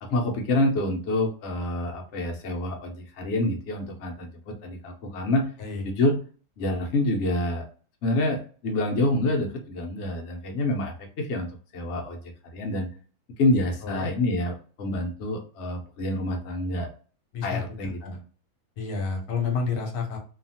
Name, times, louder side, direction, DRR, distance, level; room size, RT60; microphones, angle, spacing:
voice 1, 0.0-5.5 5.8-6.2 6.6-7.6 8.0-12.2 12.5-12.9 13.4-16.9 17.4-18.2, left 1 dB, 60° left, 1 dB, 0.8 m, -27 dB
voice 2, 17.3-18.2 18.8-20.2, left 5 dB, 75° left, 2 dB, 1.2 m, -30 dB
2.8 x 2.4 x 2.7 m, 0.40 s
omnidirectional pair, 1.7 m